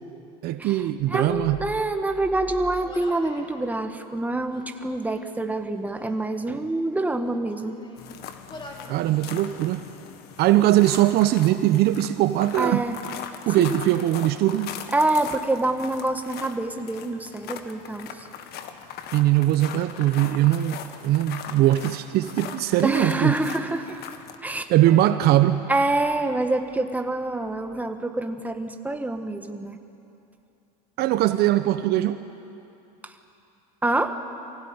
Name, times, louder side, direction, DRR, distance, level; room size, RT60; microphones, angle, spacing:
voice 1, 0.4-1.6 8.8-9.9 10.4-12.8 13.5-14.7 19.1-23.3 24.7-25.6 31.0-32.2, right 14 dB, 55° right, 11 dB, 0.9 m, -21 dB
voice 2, 1.1-7.8 12.6-13.0 13.6-13.8 14.9-18.3 22.8-24.0 24.4-24.7 25.7-29.8 33.0-33.1 33.8-34.1, right 2 dB, 10° right, 6 dB, 1.6 m, -26 dB
Human voice, 2.7-3.5 4.4-5.3 5.8-6.4 7.1-8.1 8.4-9.0 9.4-10.1, left 2 dB, 25° left, 3.2 m, -46 dB
sound 1, 8.0-24.4, left 8 dB, 55° left, 1.8 m, -40 dB
24.0 x 16.5 x 9.7 m, 2.7 s
supercardioid pair, 100°, 20 cm